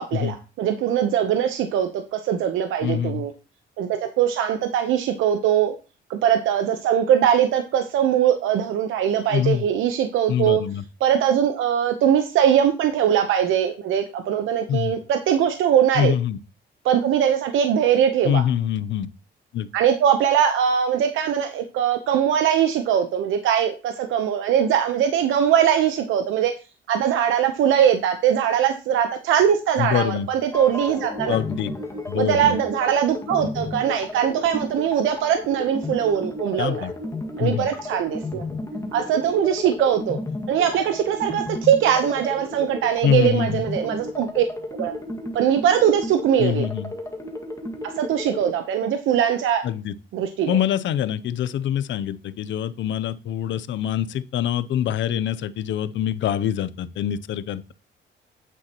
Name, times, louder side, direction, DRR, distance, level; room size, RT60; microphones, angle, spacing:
voice 1, 0.0-3.3 3.8-5.8 6.1-10.6 11.0-16.1 16.8-18.4 19.7-26.5 26.9-31.4 32.2-36.9 37.4-38.5 38.9-40.2 40.5-44.5 44.7-44.9 45.3-46.7 47.8-49.6 50.1-50.6, right 9 dB, 85° right, 1.0 m, -21 dB
voice 2, 2.8-3.3 9.3-9.7 10.3-10.8 14.7-14.9 15.9-16.4 18.2-19.1 19.5-19.7 29.8-30.3 31.3-31.7 32.1-32.6 36.6-36.9 37.4-37.7 43.0-43.6 46.4-46.9 49.6-49.9 50.5-57.7, left 10 dB, 70° left, 0.7 m, -24 dB
sound 1, 30.5-48.5, left 2 dB, 15° left, 2.0 m, -33 dB
9.2 x 8.1 x 3.0 m
cardioid pair, 90°, 20 cm